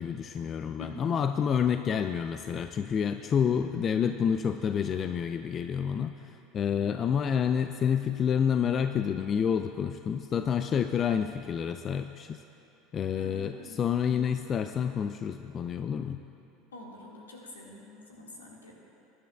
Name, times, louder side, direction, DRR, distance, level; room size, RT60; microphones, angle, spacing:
voice 1, 0.0-12.4 12.9-16.2, left 7 dB, 35° left, 8 dB, 0.4 m, -29 dB
voice 2, 0.8-1.1 6.8-7.0 13.1-14.3 16.7-18.7, left 1 dB, 75° left, -1 dB, 1.8 m, -47 dB
21.0 x 11.5 x 2.3 m, 2.9 s
figure-of-eight pair, 70°, 0 cm